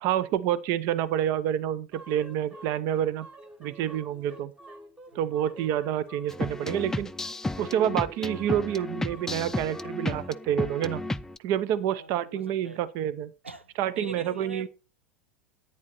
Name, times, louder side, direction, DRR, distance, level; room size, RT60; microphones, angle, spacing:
voice 1, 0.0-3.3 3.6-4.5 5.1-7.1 7.6-11.0 11.4-13.3 13.8-14.7, right 10 dB, 45° right, 0.7 m, -28 dB
sound 1, 1.9-10.3, right 2 dB, 15° right, 1.5 m, -49 dB
sound 2, 6.3-11.4, left 2 dB, 10° left, 0.5 m, -33 dB
voice 2, 11.8-12.8 13.4-14.7, right 2 dB, 85° right, 0.8 m, -42 dB
11.0 x 9.2 x 4.2 m
figure-of-eight pair, 80°, 6 cm